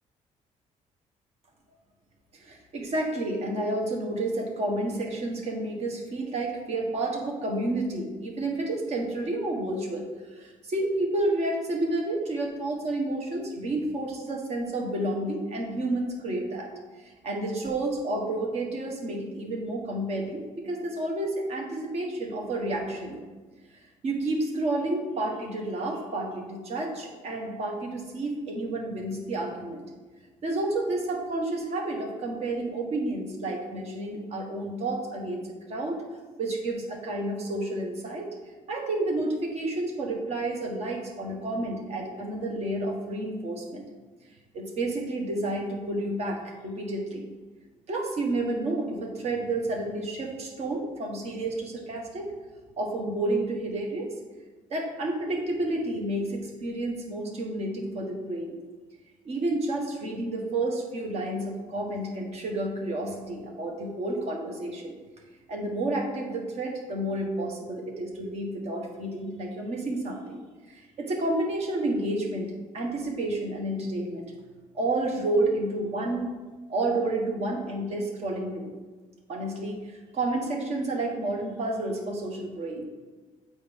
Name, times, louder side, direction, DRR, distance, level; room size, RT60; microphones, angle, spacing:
voice 1, 2.3-16.7 16.9-23.2 24.0-29.8 30.4-36.0 36.4-38.3 38.7-43.8 44.5-47.3 47.9-52.3 52.8-54.1 54.7-58.6 59.2-64.9 65.5-70.4 70.7-72.5 72.7-74.3 74.7-76.4 76.7-78.7 79.3-82.8, right 2 dB, 55° right, 0 dB, 1.4 m, -30 dB
8.1 x 4.3 x 3.6 m, 1.3 s
cardioid pair, 130°, 13 cm